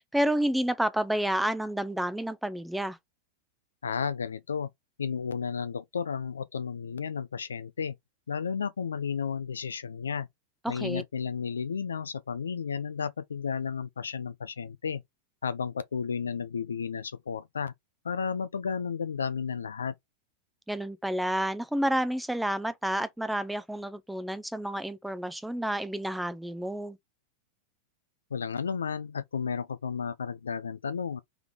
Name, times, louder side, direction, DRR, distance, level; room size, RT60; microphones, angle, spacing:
voice 1, 0.0-3.0 10.6-11.0 20.7-27.0, right 1 dB, 5° right, 0.5 m, -30 dB
voice 2, 3.8-4.7 5.0-8.0 8.3-10.3 10.7-15.0 15.4-17.7 18.0-19.9 28.3-31.2, left 6 dB, 75° left, 0.4 m, -33 dB
3.5 x 3.4 x 3.7 m
figure-of-eight pair, 90°, 0 cm